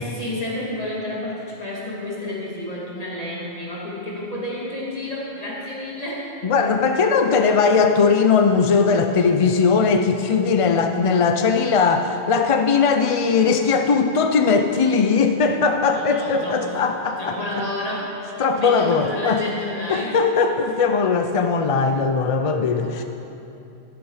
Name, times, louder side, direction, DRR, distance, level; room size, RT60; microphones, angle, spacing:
voice 1, 0.0-6.3 13.1-13.6 15.9-16.8 17.2-20.1 22.8-22.9, left 1 dB, 35° left, -6 dB, 2.4 m, -30 dB
voice 2, 6.4-17.4 18.4-19.4 19.9-23.0, left 5 dB, 50° left, 6 dB, 0.4 m, -19 dB
15.5 x 7.1 x 4.8 m, 2.8 s
omnidirectional pair, 1.1 m